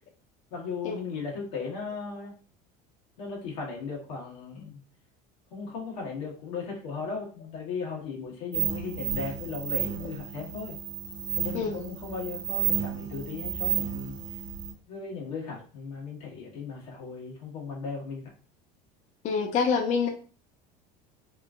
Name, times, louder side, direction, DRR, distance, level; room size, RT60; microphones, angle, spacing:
voice 1, 0.5-2.3 3.2-4.8 5.5-10.8 11.4-14.1 14.9-18.3, left 5 dB, 85° left, -3 dB, 1.3 m, -37 dB
sound 1, 8.5-14.7, right 9 dB, 45° right, 0.9 m, -32 dB
voice 2, 11.5-11.9 19.2-20.1, left 5 dB, 40° left, 3 dB, 0.5 m, -26 dB
3.0 x 2.5 x 2.3 m, 0.39 s
supercardioid pair, 95°, 19 cm